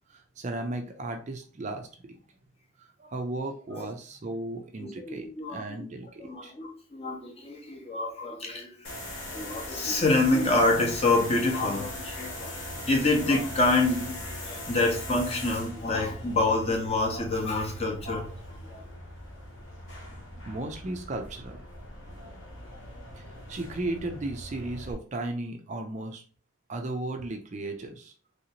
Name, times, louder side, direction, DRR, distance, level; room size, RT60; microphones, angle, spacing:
voice 1, 0.1-2.2 2.8-6.5 20.4-22.2 23.2-26.2 26.7-28.1, right 2 dB, 35° right, 0.3 m, -36 dB
voice 2, 4.8-5.9 6.2-8.9 9.3-18.3 18.6-18.8, left 2 dB, 30° left, 0.7 m, -27 dB
sound 1, 8.8-24.9, left 1 dB, 60° left, 1.0 m, -40 dB
3.2 x 2.8 x 2.8 m
head